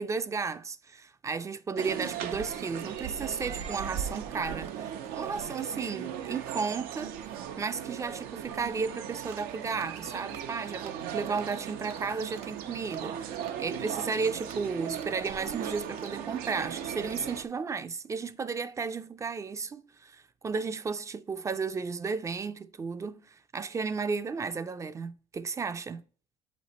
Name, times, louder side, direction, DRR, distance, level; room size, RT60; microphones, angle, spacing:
voice 1, 0.0-7.1 7.6-13.3 13.6-26.0, right 5 dB, 20° right, 0.4 m, -34 dB
sound 1, 1.8-17.4, right 9 dB, 85° right, 0.7 m, -38 dB
sound 2, 3.4-17.4, right 6 dB, 45° right, 0.8 m, -49 dB
7.7 x 3.2 x 4.1 m
cardioid pair, 135°, 15 cm